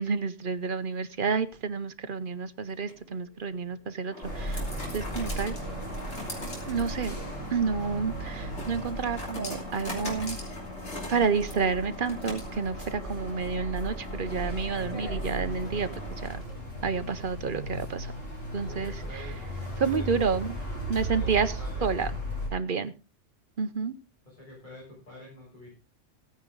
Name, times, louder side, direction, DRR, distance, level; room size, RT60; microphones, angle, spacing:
voice 1, 0.0-4.6 4.9-5.5 6.7-7.2 7.5-10.4 11.1-15.9 16.2-16.4 16.8-18.1 18.5-18.9 19.8-20.5 20.9-21.5 21.8-22.1 22.5-22.9 23.6-23.9, right 5 dB, 50° right, 12 dB, 0.9 m, -29 dB
sound 1, 2.7-16.7, left 1 dB, 60° left, 3.6 m, -41 dB
sound 2, 4.2-22.5, right 1 dB, 80° left, 6.3 m, -37 dB
voice 2, 18.6-19.4 19.8-20.5 21.1-21.9 24.3-25.8, equal, 40° left, -6 dB, 7.2 m, -46 dB
16.0 x 9.6 x 3.9 m, 0.31 s
omnidirectional pair, 1.3 m